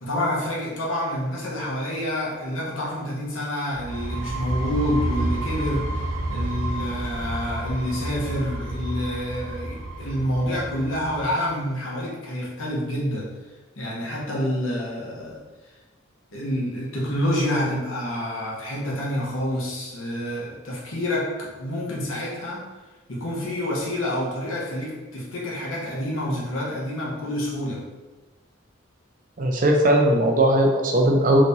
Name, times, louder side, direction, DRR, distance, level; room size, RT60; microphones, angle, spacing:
voice 1, 0.0-13.3 13.7-15.4 16.3-22.6 23.1-27.8, equal, 85° left, -5 dB, 1.0 m, -28 dB
sound 1, 3.7-11.4, right 1 dB, 85° right, 0.7 m, -30 dB
voice 2, 29.4-31.4, right 1 dB, 40° right, 1 dB, 0.5 m, -18 dB
3.5 x 3.0 x 2.6 m, 1.2 s
head